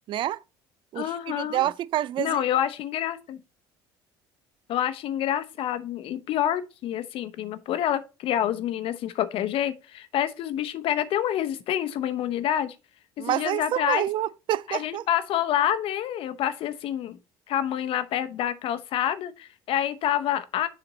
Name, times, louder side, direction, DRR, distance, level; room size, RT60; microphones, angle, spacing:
voice 1, 0.1-0.4 0.9-2.4 13.2-15.0, right 13 dB, 50° right, 0.3 m, -28 dB
voice 2, 0.9-1.7 2.2-3.4 4.7-12.7 13.3-14.1 14.7-17.2 17.5-20.7, left 11 dB, 60° left, 0.8 m, -27 dB
7.0 x 4.3 x 4.0 m
supercardioid pair, 80°, 11 cm